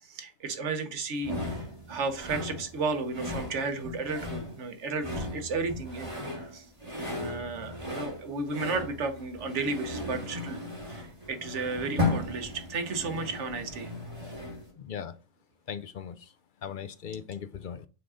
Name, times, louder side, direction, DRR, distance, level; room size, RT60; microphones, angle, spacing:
voice 1, 0.0-6.7 7.1-10.6 10.9-13.9, right 3 dB, 75° right, 8 dB, 1.3 m, -33 dB
sound 1, 1.2-14.7, left 2 dB, 30° right, 2.6 m, -36 dB
voice 2, 14.8-15.2 15.7-16.3 16.6-17.9, left 8 dB, 60° left, 12 dB, 0.6 m, -38 dB
6.0 x 3.6 x 4.9 m, 0.33 s
omnidirectional pair, 1.2 m